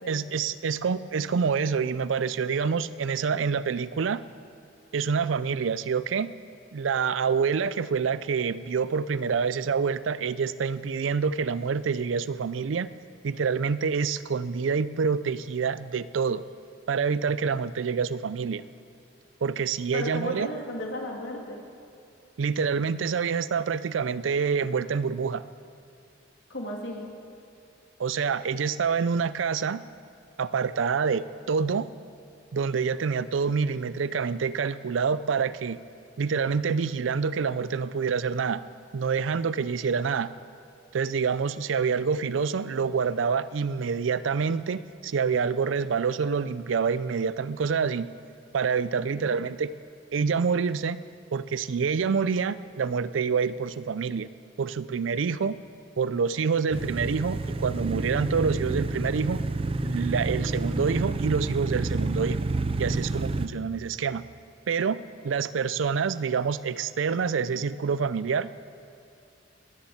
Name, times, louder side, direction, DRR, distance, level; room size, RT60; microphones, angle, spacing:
voice 1, 0.1-4.2 4.9-6.3 6.7-12.9 13.2-16.4 16.9-18.6 19.4-20.5 22.4-25.4 28.0-29.8 30.4-31.9 32.5-35.8 36.2-38.6 38.9-40.3 40.9-48.1 48.5-49.7 50.1-51.0 51.3-54.3 54.6-55.6 56.0-59.4 59.8-62.4 62.8-64.2 64.7-68.5, right 5 dB, 85° right, 16 dB, 0.4 m, -27 dB
voice 2, 19.9-21.6 26.5-27.1 49.1-49.3, left 1 dB, 65° left, 0 dB, 2.3 m, -35 dB
sound 1, 56.7-63.5, right 2 dB, 30° right, 0.5 m, -29 dB
20.5 x 7.2 x 7.9 m, 2.5 s
head